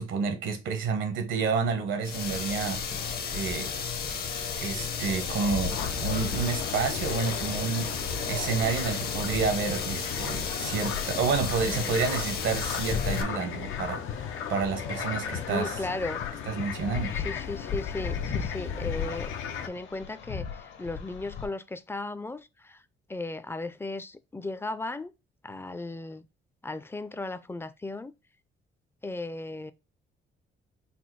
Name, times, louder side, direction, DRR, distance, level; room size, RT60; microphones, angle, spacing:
voice 1, 0.0-2.8 3.3-3.7 4.6-7.9 8.3-15.7 16.5-17.2, right 5 dB, 75° right, 0.9 m, -30 dB
sound 1, 2.0-13.2, left 6 dB, 50° left, 0.8 m, -33 dB
sound 2, 5.1-21.5, left 6 dB, 70° left, 1.1 m, -38 dB
sound 3, 5.7-19.7, left 8 dB, 85° left, 0.6 m, -37 dB
voice 2, 15.5-16.2 17.1-19.3 19.7-22.8 23.1-25.1 25.4-26.2 26.6-28.1 29.0-29.7, left 2 dB, 10° left, 0.4 m, -36 dB
4.2 x 2.0 x 4.5 m
cardioid pair, 90°, 20 cm